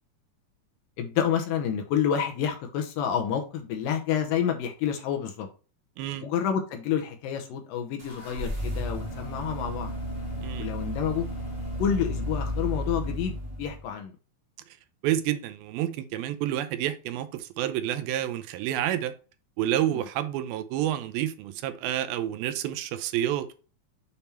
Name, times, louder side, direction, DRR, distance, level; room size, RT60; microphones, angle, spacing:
voice 1, 1.0-5.5 6.2-9.9 10.6-11.3 11.8-14.1 19.9-20.0, left 8 dB, 75° left, 2.4 m, -29 dB
sound 1, 8.0-13.9, equal, 15° right, 1.5 m, -33 dB
voice 2, 15.0-19.1 19.6-23.5, right 12 dB, 80° right, 2.3 m, -29 dB
7.0 x 3.5 x 4.2 m
omnidirectional pair, 4.3 m